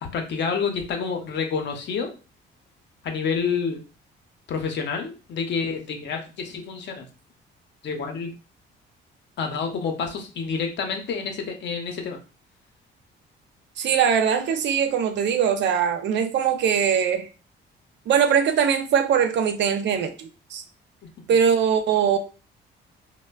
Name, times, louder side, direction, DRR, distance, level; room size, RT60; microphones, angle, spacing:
voice 1, 0.0-2.1 3.0-3.8 4.5-7.1 7.8-8.3 9.4-12.2 21.0-21.1, left 5 dB, 60° left, 0.7 m, -28 dB
voice 2, 13.8-17.3 18.1-20.6 21.3-22.2, right 7 dB, 65° right, 0.5 m, -21 dB
3.1 x 2.1 x 2.2 m
cardioid pair, 90°, 20 cm